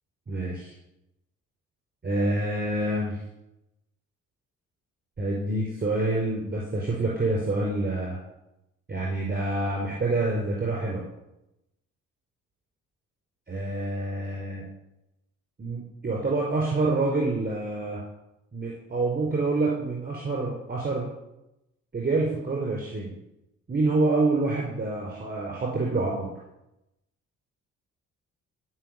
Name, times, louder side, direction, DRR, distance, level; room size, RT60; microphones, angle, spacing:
voice 1, 0.3-0.7 2.0-3.2 5.2-8.2 8.9-11.0 13.5-14.6 15.6-18.0 18.5-21.1 21.9-23.1 23.7-26.3, right 2 dB, 30° right, -2 dB, 5.3 m, -27 dB
15.5 x 6.1 x 9.3 m, 0.90 s
cardioid pair, 90°, 30 cm